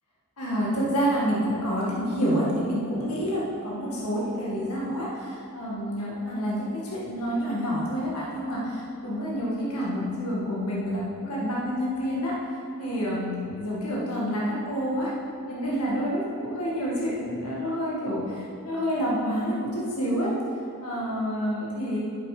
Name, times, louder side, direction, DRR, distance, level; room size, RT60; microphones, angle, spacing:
voice 1, 0.4-12.4 12.8-15.1 15.5-20.4 20.8-22.0, equal, 85° left, -5 dB, 2.0 m, -28 dB
8.0 x 7.2 x 5.1 m, 2.6 s
head